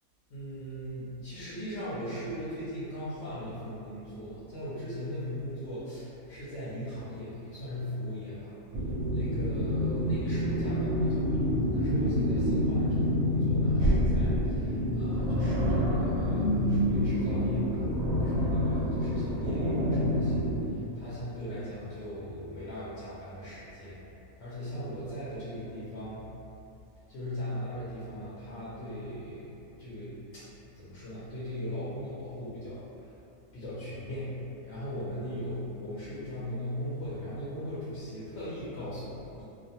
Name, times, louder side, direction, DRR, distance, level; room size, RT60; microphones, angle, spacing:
voice 1, 0.3-8.5 8.8-24.0 24.4-26.3 27.1-33.2 33.5-34.3 34.6-39.4, equal, 65° left, -11 dB, 0.8 m, -39 dB
sound 1, 8.7-20.7, equal, 80° right, 1.0 m, -27 dB
2.5 x 2.1 x 2.7 m, 2.8 s
omnidirectional pair, 1.5 m